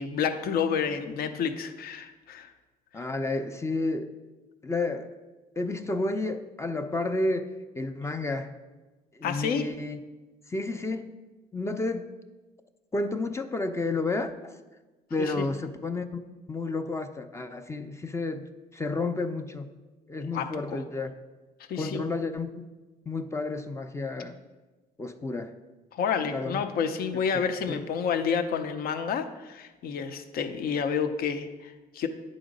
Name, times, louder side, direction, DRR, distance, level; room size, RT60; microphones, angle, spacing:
voice 1, 0.0-2.5 9.2-9.7 15.2-15.4 20.3-20.8 21.7-22.0 25.9-32.1, left 6 dB, 60° left, 9 dB, 0.7 m, -29 dB
voice 2, 2.9-4.1 4.6-5.1 5.6-8.5 9.1-10.0 10.5-11.1 11.5-12.1 12.9-14.6 15.1-16.2 16.5-19.7 20.1-21.1 21.8-22.5 23.1-24.4 25.0-25.5 26.3-26.6 27.7-27.8, left 2 dB, 15° left, 9 dB, 0.5 m, -31 dB
9.2 x 4.0 x 5.2 m, 1.2 s
cardioid pair, 110°, 17 cm